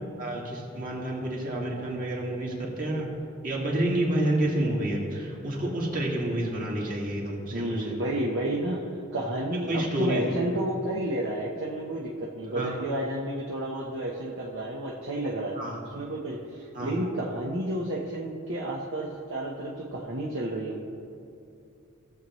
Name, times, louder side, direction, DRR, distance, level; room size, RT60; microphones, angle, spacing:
voice 1, 0.2-3.1 3.4-8.0 9.7-10.4 12.5-12.7 15.5-15.8 16.7-16.9, right 1 dB, 45° right, -3 dB, 2.1 m, -29 dB
voice 2, 7.5-15.6 15.9-20.9, right 1 dB, 65° right, -3 dB, 0.9 m, -31 dB
17.0 x 7.0 x 3.1 m, 2.7 s
head